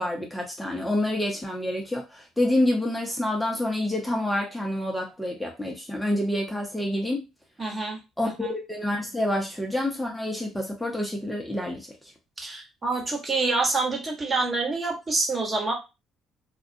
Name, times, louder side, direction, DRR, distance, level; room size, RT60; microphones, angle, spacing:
voice 1, 0.0-7.2 8.2-11.9, left 1 dB, 5° left, 0 dB, 0.6 m, -27 dB
voice 2, 7.6-8.5 12.4-15.7, right 3 dB, 30° right, 0 dB, 1.1 m, -27 dB
2.2 x 2.1 x 2.6 m, 0.26 s
hypercardioid pair, 60°, 0 cm